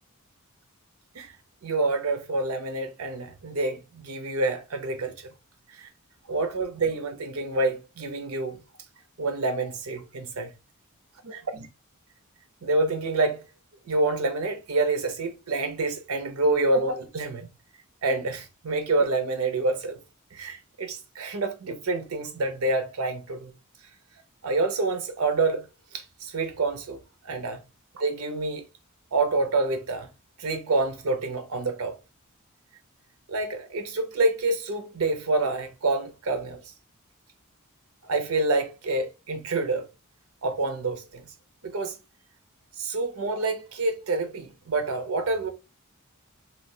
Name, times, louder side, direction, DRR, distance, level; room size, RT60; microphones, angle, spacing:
voice 1, 1.6-5.1 5.7-5.9 6.3-8.6 9.2-10.5 11.2-11.7 12.6-13.4 13.9-17.5 18.0-20.0 20.3-23.5 24.4-25.7 25.9-27.0 27.2-27.6 28.0-28.6 29.1-30.1 30.4-32.0 33.3-36.6 38.0-39.9 40.4-41.3 41.6-42.0 42.8-45.5, right 2 dB, 80° right, 0.6 m, -27 dB
3.1 x 2.4 x 2.6 m
head